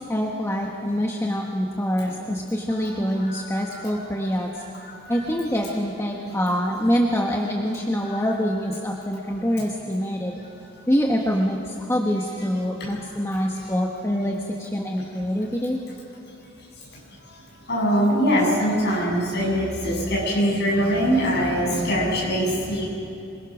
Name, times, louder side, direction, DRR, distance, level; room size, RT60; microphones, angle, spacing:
voice 1, 0.1-4.6 5.1-10.4 10.9-15.8, equal, 15° left, -1 dB, 1.4 m, -25 dB
voice 2, 2.7-3.4 3.7-4.1 4.6-5.3 6.2-6.3 8.0-8.3 10.4-10.5 12.8-13.0 13.6-13.7 16.7-22.8, equal, 55° left, -3 dB, 7.6 m, -24 dB
26.0 x 22.0 x 6.2 m, 2.9 s
head